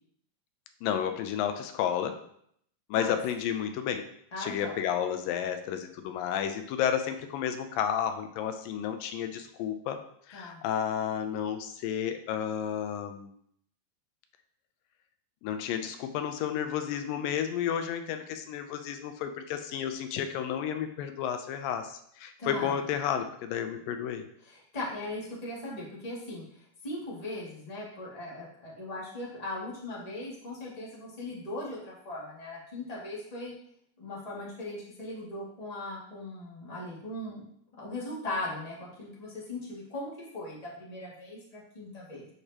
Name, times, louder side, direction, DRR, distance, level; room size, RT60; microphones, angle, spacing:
voice 1, 0.8-2.2 2.9-4.0 4.4-10.0 10.3-13.3 15.4-24.2, left 9 dB, 90° left, 7 dB, 2.4 m, -31 dB
voice 2, 4.3-4.7 10.3-10.6 22.4-22.8 24.4-33.5 34.0-37.5 37.8-42.3, left 1 dB, 15° left, -6 dB, 1.7 m, -39 dB
11.0 x 5.0 x 2.9 m, 0.67 s
omnidirectional pair, 3.9 m